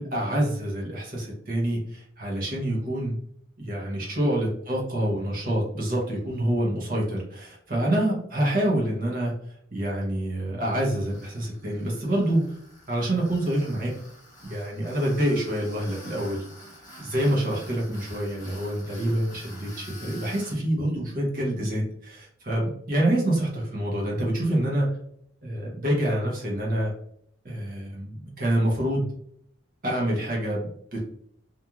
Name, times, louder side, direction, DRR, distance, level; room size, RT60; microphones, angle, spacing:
voice 1, 0.0-3.1 3.6-9.3 9.7-12.4 12.9-13.9 14.4-16.4 17.0-25.0 25.4-26.9 27.4-29.1 29.8-31.0, right 1 dB, 45° right, -3 dB, 0.7 m, -26 dB
Tools, 11.1-20.6, left 1 dB, 15° left, 0.7 m, -47 dB
3.0 x 2.4 x 2.3 m, 0.70 s
head